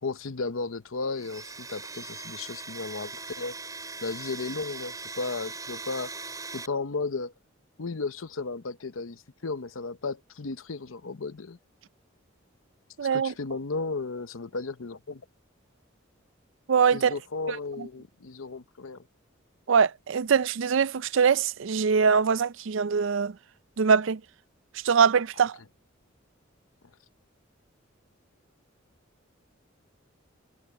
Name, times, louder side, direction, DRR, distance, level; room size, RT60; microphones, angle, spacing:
voice 1, 0.0-3.7 4.0-6.1 6.5-7.3 7.8-11.6 13.0-15.2 16.9-19.0, left 3 dB, 80° left, 0.8 m, -34 dB
Domestic sounds home sounds, 1.1-6.7, right 3 dB, 20° right, 5.4 m, -40 dB
voice 2, 13.0-13.3 16.7-17.2 17.5-17.9 19.7-23.3 23.8-24.2 24.8-25.6, right 6 dB, 65° right, 0.5 m, -23 dB
head